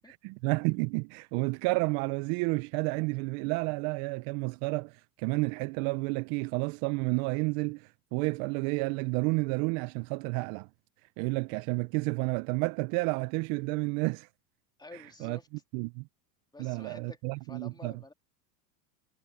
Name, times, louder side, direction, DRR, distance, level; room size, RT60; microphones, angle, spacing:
voice 1, 0.0-10.7 11.2-14.3 15.2-15.4 15.7-16.0 16.6-17.9, right 28 dB, 50° right, 0.6 m, -31 dB
voice 2, 14.8-15.5 16.5-17.2 17.5-18.1, left 3 dB, 10° left, 3.5 m, -49 dB
supercardioid pair, 115°, 47 cm